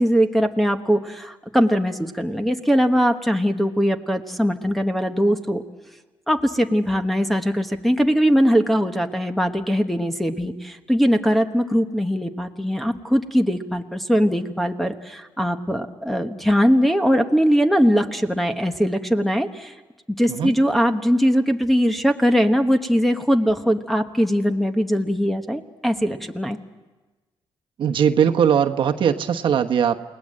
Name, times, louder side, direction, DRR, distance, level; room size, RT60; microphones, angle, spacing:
voice 1, 0.0-5.6 6.3-19.7 20.2-26.6, equal, ahead, 7 dB, 1.2 m, -21 dB
voice 2, 27.8-30.0, right 8 dB, 60° right, 5 dB, 1.2 m, -19 dB
29.0 x 19.5 x 7.6 m, 1.2 s
cardioid pair, 130°, 9 cm